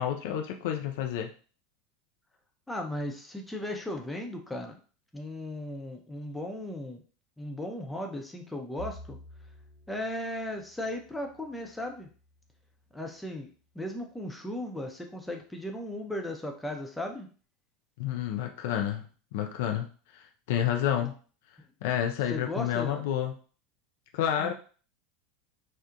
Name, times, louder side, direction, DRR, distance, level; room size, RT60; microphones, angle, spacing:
voice 1, 0.0-1.3 18.0-19.0 19.3-19.9 20.1-21.1 21.8-23.3 24.1-24.5, left 10 dB, 65° left, 4 dB, 0.3 m, -29 dB
voice 2, 2.7-4.8 5.1-7.0 7.4-9.2 9.9-12.1 12.9-13.5 13.7-17.3 22.3-23.0 24.4-24.5, left 1 dB, 5° left, 2 dB, 0.6 m, -36 dB
Bowed string instrument, 8.8-13.2, equal, 75° right, 0.8 m, -50 dB
2.7 x 2.1 x 2.4 m, 0.38 s
figure-of-eight pair, 80°, 0 cm